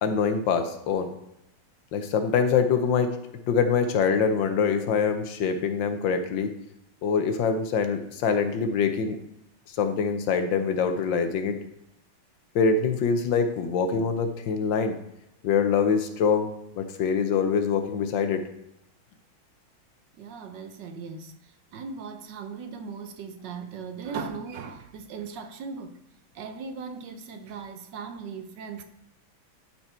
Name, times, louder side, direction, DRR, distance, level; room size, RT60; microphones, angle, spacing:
voice 1, 0.0-1.1 1.9-3.2 3.5-6.5 7.0-9.2 9.7-11.6 12.5-15.0 15.4-18.4, left 6 dB, 70° left, 7 dB, 1.4 m, -24 dB
voice 2, 20.2-21.3 21.7-25.9 26.3-28.8, right 5 dB, 70° right, 7 dB, 1.2 m, -38 dB
12.5 x 4.5 x 4.3 m, 0.84 s
omnidirectional pair, 2.2 m